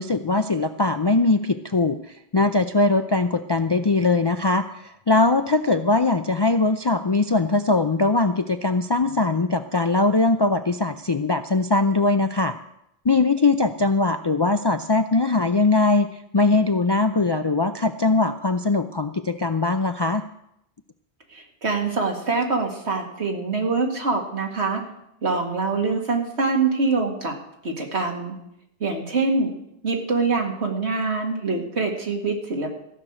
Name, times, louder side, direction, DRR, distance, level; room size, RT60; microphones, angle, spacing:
voice 1, 0.0-12.5 13.0-16.1 16.3-20.2, left 3 dB, 40° left, 8 dB, 0.3 m, -21 dB
voice 2, 21.3-24.8 25.2-27.3 27.6-28.3 28.8-29.5 29.8-32.7, right 3 dB, 80° right, 1 dB, 2.4 m, -24 dB
15.0 x 6.4 x 8.7 m, 0.80 s
omnidirectional pair, 1.1 m